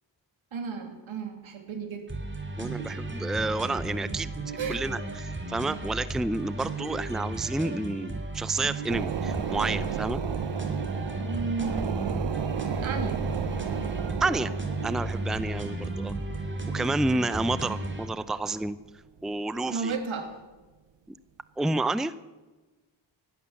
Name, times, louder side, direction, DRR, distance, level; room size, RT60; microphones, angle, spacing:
voice 1, 0.5-2.2 4.6-4.8 11.2-12.3 12.8-13.2 19.7-20.4, right 5 dB, 80° right, 6 dB, 2.7 m, -34 dB
sound 1, 2.1-18.1, right 2 dB, 25° right, 2.9 m, -34 dB
voice 2, 2.6-4.3 4.7-10.2 14.2-14.5 14.8-16.1 16.7-18.8 19.2-19.9 21.6-22.1, right 2 dB, ahead, 16 dB, 0.6 m, -30 dB
sound 2, 8.9-18.9 19.3-19.4, right 9 dB, 65° right, 0.9 m, -34 dB
17.0 x 12.0 x 7.2 m, 1.2 s
cardioid pair, 65°, 47 cm